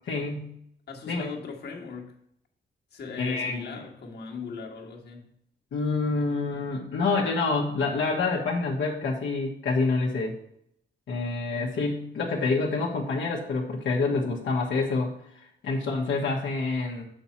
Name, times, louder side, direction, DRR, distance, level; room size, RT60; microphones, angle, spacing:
voice 1, 0.1-0.6 1.1-1.3 3.2-3.6 5.7-10.4 11.1-15.1 15.6-17.1, left 3 dB, 80° left, 1.2 m, -27 dB
voice 2, 0.9-2.2 2.9-5.3, left 5 dB, 60° left, 1.5 m, -39 dB
7.1 x 5.6 x 4.3 m
wide cardioid pair, 130°, 19 cm